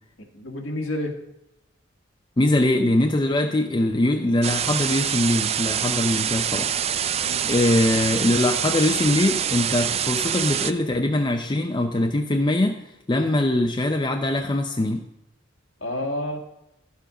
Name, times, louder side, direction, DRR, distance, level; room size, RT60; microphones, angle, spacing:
voice 1, 0.3-1.1 7.2-7.5 15.8-16.4, left 1 dB, 80° left, 1 dB, 1.7 m, -29 dB
voice 2, 2.4-6.7 7.5-12.8 13.1-15.1, left 1 dB, 25° left, 3 dB, 0.6 m, -22 dB
sound 1, 4.4-10.7, right 9 dB, 35° right, 0.4 m, -25 dB
12.0 x 7.0 x 4.9 m, 0.85 s
head